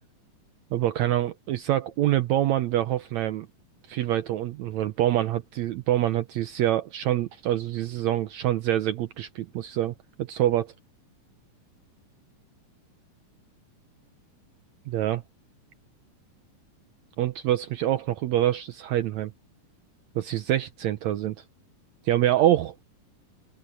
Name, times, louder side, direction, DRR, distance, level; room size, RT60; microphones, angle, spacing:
voice 1, 0.7-3.5 3.9-10.7 14.9-15.2 17.2-19.3 20.2-21.4 22.1-22.7, right 13 dB, 75° right, 1.7 m, -25 dB
open air
omnidirectional pair, 4.0 m